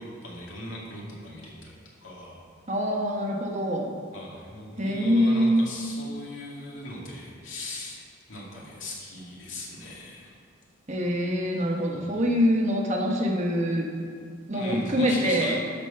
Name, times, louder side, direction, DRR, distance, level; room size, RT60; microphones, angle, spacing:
voice 1, 0.0-2.4 4.1-8.0 8.3-10.3 11.9-12.1 14.5-15.6, left 1 dB, 70° left, -4 dB, 2.4 m, -39 dB
voice 2, 2.7-3.9 4.8-5.6 10.9-13.9 14.5-15.6, equal, 35° right, 0 dB, 1.2 m, -24 dB
12.5 x 5.1 x 5.7 m, 2.2 s
head